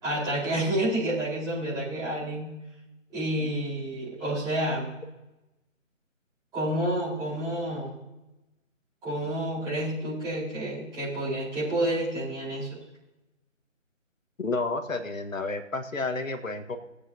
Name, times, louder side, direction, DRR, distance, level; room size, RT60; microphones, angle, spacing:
voice 1, 0.0-2.5 3.1-4.9 6.5-8.0 9.0-12.8, right 1 dB, 10° right, -11 dB, 4.4 m, -29 dB
voice 2, 14.4-16.8, left 3 dB, 85° left, 7 dB, 1.7 m, -31 dB
19.5 x 8.6 x 2.8 m, 0.98 s
figure-of-eight pair, 160°, 39 cm